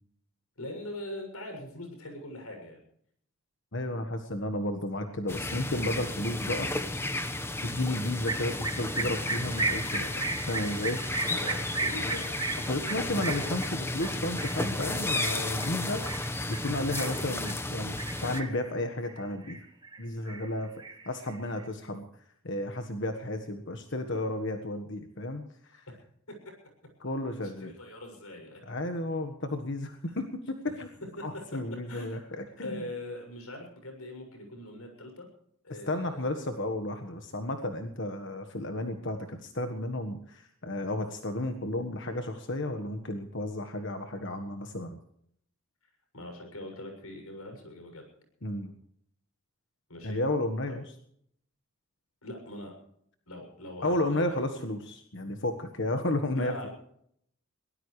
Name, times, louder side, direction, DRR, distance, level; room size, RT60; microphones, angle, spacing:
voice 1, 0.6-2.8 11.2-12.3 26.3-26.5 27.6-28.6 30.1-30.2 31.2-31.3 31.9-35.3 35.6-36.4 46.1-48.0 49.9-50.2 52.2-52.7 53.3-54.4 56.3-56.7, left 1 dB, 85° left, 5 dB, 7.0 m, -42 dB
voice 2, 3.7-6.7 7.6-11.1 12.6-16.0 16.5-17.9 18.2-19.6 20.0-20.7 21.0-22.0 22.4-25.8 27.0-27.7 28.7-30.9 31.2-32.9 35.7-45.0 48.4-48.7 50.0-50.8 53.8-56.7, left 1 dB, 55° left, 6 dB, 1.5 m, -33 dB
sound 1, 5.3-18.4, left 2 dB, 10° left, 1.2 m, -33 dB
sound 2, 8.3-17.6 18.0-18.7 19.1-20.0 20.3-21.6, right 3 dB, 20° right, 1.7 m, -35 dB
23.0 x 18.5 x 3.3 m, 0.68 s
head